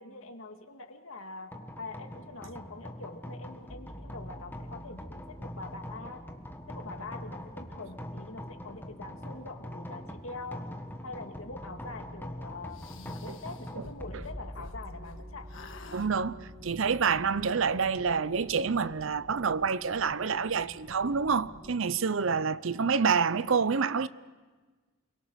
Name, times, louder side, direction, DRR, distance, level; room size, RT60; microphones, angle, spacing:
voice 1, 0.0-6.2 6.7-10.7 11.0-15.5, left 3 dB, 80° left, 2.1 m, -44 dB
sound 1, 1.5-18.7, equal, 10° left, 1.4 m, -43 dB
sound 2, 12.7-15.2 15.5-16.1, left 3 dB, 65° left, 1.6 m, -48 dB
sound 3, 14.8-21.7, left 1 dB, 30° right, 1.9 m, -51 dB
voice 2, 15.9-24.1, right 5 dB, 70° right, 0.6 m, -27 dB
29.0 x 22.5 x 6.4 m
head